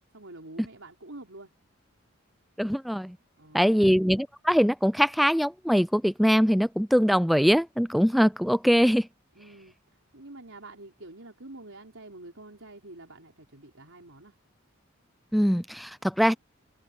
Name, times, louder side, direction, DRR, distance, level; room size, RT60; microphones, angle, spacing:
voice 1, 0.1-1.5 3.4-4.0 9.4-14.4, right 2 dB, 85° right, 4.6 m, -47 dB
voice 2, 2.6-3.2 3.5-9.1 15.3-16.3, equal, ahead, 0.3 m, -22 dB
head